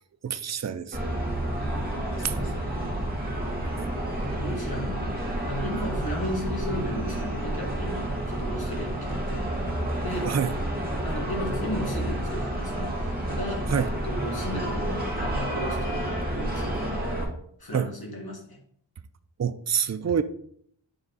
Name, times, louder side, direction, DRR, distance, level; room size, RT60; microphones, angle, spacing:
voice 1, 0.2-1.0 3.8-3.9 10.2-10.5 13.7-13.9 17.7-17.9 19.4-20.2, right 7 dB, 35° right, 12 dB, 0.5 m, -26 dB
sound 1, 0.9-17.2, right 1 dB, 20° right, 2.0 m, -30 dB
voice 2, 1.6-2.9 4.4-9.6 9.9-10.4 11.0-16.8 17.6-18.6, equal, 50° left, 0 dB, 1.9 m, -35 dB
8.7 x 3.5 x 4.0 m, 0.65 s
wide cardioid pair, 60°, 47 cm